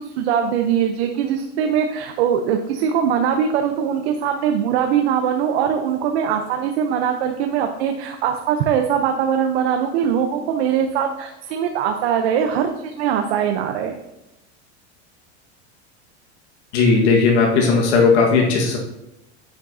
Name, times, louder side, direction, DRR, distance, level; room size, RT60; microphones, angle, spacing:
voice 1, 0.0-14.0, right 8 dB, 65° right, 5 dB, 0.8 m, -21 dB
voice 2, 16.7-18.8, left 4 dB, 75° left, 0 dB, 1.6 m, -16 dB
9.6 x 8.7 x 2.7 m, 0.91 s
supercardioid pair, 165°, 34 cm